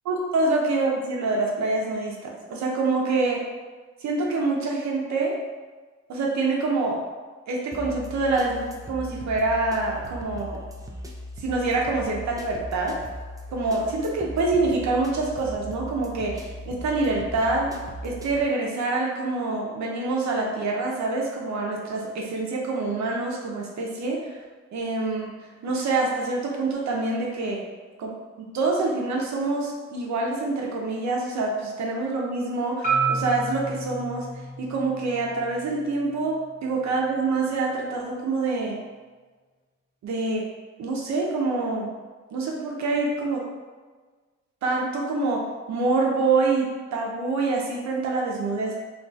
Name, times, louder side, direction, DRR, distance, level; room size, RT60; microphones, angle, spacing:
voice 1, 0.0-3.4 4.0-5.4 6.1-7.0 7.5-10.6 11.4-13.0 13.5-17.7 18.0-24.4 24.7-25.3 25.6-27.6 28.0-34.3 34.6-38.8 40.0-40.4 40.8-41.9 42.3-43.5 44.6-45.4 45.7-48.8, right 3 dB, 65° right, -1 dB, 0.8 m, -26 dB
sound 1, 7.7-18.4, equal, 10° right, 0.4 m, -39 dB
Marimba xylophone, 32.8-37.0, right 4 dB, 25° right, 1.1 m, -31 dB
2.6 x 2.3 x 4.0 m, 1.4 s
cardioid pair, 90°, 30 cm